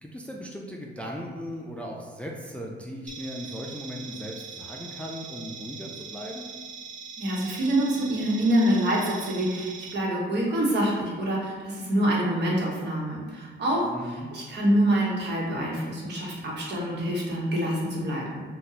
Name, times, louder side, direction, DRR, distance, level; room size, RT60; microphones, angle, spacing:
voice 1, 0.0-6.5 13.8-14.3, equal, 5° left, -2 dB, 0.3 m, -37 dB
sound 1, 3.1-9.9, right 5 dB, 40° right, 0.6 m, -41 dB
voice 2, 7.2-18.4, right 1 dB, 60° right, -4 dB, 1.0 m, -26 dB
2.7 x 2.2 x 3.9 m, 1.5 s
cardioid pair, 90°, 20 cm